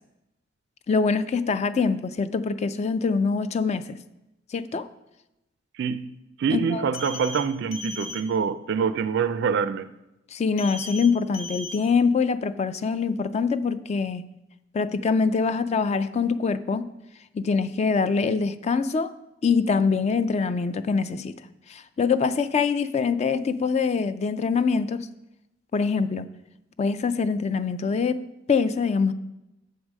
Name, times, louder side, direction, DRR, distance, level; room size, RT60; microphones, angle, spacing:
voice 1, 0.9-3.8 4.5-4.9 6.5-6.9 10.3-14.2 14.7-16.9 17.3-19.1 19.4-21.3 21.7-25.1 25.7-26.3 26.8-28.2 28.5-29.1, left 5 dB, 35° left, 0.3 m, -24 dB
voice 2, 5.8-6.1 6.4-9.9, right 6 dB, 60° right, 0.3 m, -25 dB
sound 1, 6.9-7.4 7.7-8.2 10.6-11.1 11.3-11.8, left 3 dB, 85° left, 0.9 m, -36 dB
8.0 x 4.7 x 6.3 m
head